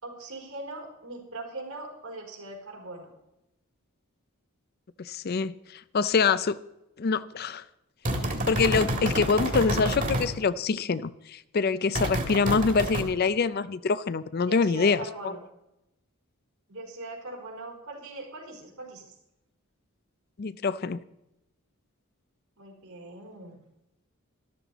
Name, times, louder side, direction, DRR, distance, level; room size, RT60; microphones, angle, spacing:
voice 1, 0.0-3.1 14.5-15.4 16.7-19.1 22.6-23.6, right 2 dB, 75° right, 0 dB, 4.4 m, -41 dB
voice 2, 5.0-6.6 7.0-7.6 8.5-15.4 20.4-21.0, left 4 dB, 45° left, 16 dB, 0.4 m, -25 dB
sound 1, 8.1-10.3 12.0-13.0, right 1 dB, 35° right, 1.9 m, -28 dB
13.0 x 12.5 x 4.1 m, 0.89 s
head